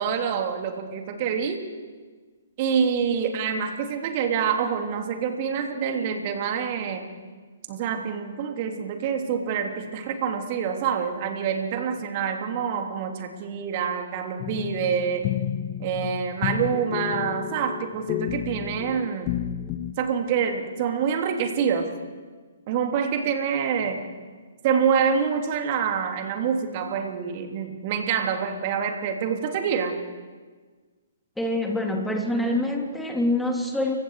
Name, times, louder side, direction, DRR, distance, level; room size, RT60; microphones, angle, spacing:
voice 1, 0.0-1.7 2.6-7.1 7.7-15.2 15.8-19.3 20.0-21.9 22.7-24.0 24.6-29.9, right 7 dB, 35° right, 4 dB, 3.1 m, -26 dB
sound 1, 14.4-19.9, left 11 dB, 30° left, 1.0 m, -31 dB
voice 2, 31.4-33.9, left 1 dB, 5° left, 1 dB, 3.4 m, -25 dB
29.5 x 24.5 x 4.8 m, 1.4 s
figure-of-eight pair, 125°, 0 cm